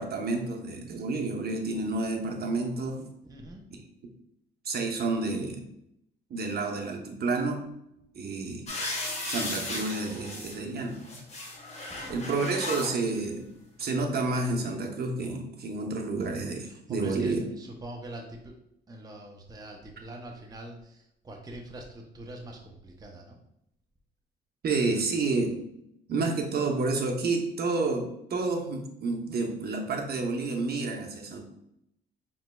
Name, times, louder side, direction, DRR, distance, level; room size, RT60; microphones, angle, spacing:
voice 1, 0.0-3.1 3.7-3.8 4.6-5.6 6.3-7.7 8.1-8.6 9.3-11.0 12.1-13.4 13.8-17.4 24.6-25.6 26.1-31.4, right 3 dB, 55° right, 2 dB, 0.8 m, -30 dB
voice 2, 3.2-3.6 11.9-12.2 16.6-18.5 18.9-23.4, right 1 dB, 20° right, 1 dB, 0.6 m, -44 dB
sound 1, 8.7-10.6 10.9-12.9 13.8-13.9, left 2 dB, 35° left, 1.1 m, -35 dB
5.4 x 3.0 x 2.3 m, 0.78 s
cardioid pair, 90°, 20 cm